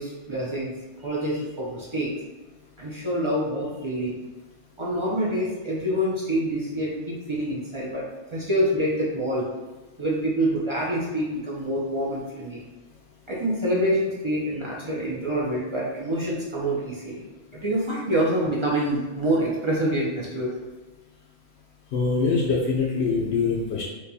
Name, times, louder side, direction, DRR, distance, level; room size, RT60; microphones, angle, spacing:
voice 1, 0.0-2.1 2.8-4.2 4.8-9.5 10.0-12.6 13.3-17.2 17.6-20.5, right 1 dB, 40° right, -5 dB, 0.5 m, -26 dB
voice 2, 21.9-23.9, left 4 dB, 70° left, -2 dB, 0.8 m, -24 dB
4.5 x 2.3 x 2.7 m, 1.2 s
omnidirectional pair, 1.2 m